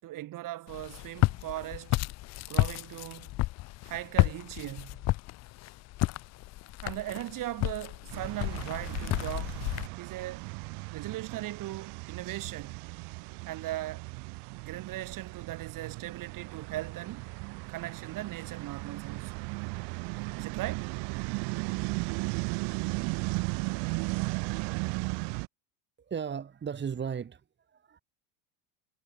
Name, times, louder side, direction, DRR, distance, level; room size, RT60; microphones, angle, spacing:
voice 1, 0.0-2.0 2.5-3.3 3.8-5.0 6.8-9.6 9.9-10.5 10.9-12.9 13.4-14.1 14.6-17.3 17.7-19.4 20.4-20.9, right 15 dB, 50° right, 5.7 m, -39 dB
Walk footsteps, 0.7-9.9, left 19 dB, 40° left, 0.6 m, -31 dB
sound 1, 8.1-25.5, right 32 dB, 65° right, 7.4 m, -36 dB
voice 2, 26.1-27.4 27.7-28.0, right 7 dB, 25° right, 3.6 m, -35 dB
supercardioid pair, 120°, 43 cm